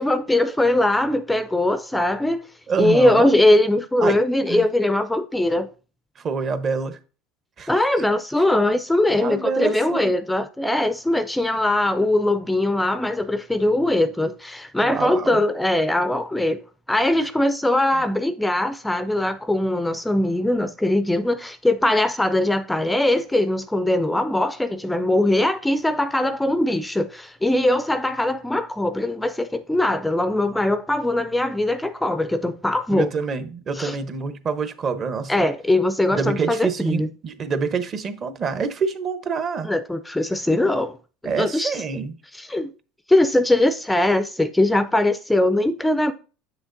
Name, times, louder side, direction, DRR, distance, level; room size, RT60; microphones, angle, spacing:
voice 1, 0.0-2.4 2.8-5.7 7.7-16.6 16.9-33.1 33.7-34.0 35.3-37.1 39.6-41.0 41.4-41.8 42.3-42.7 43.1-46.1, left 1 dB, 5° left, 0.4 m, -21 dB
voice 2, 2.7-3.4 4.0-4.2 4.5-4.6 6.2-7.0 7.6-7.7 9.2-10.1 14.8-15.4 32.9-35.4 36.1-39.7 41.2-42.1, right 5 dB, 40° right, 0.9 m, -26 dB
7.6 x 6.1 x 2.6 m
supercardioid pair, 105°, 0 cm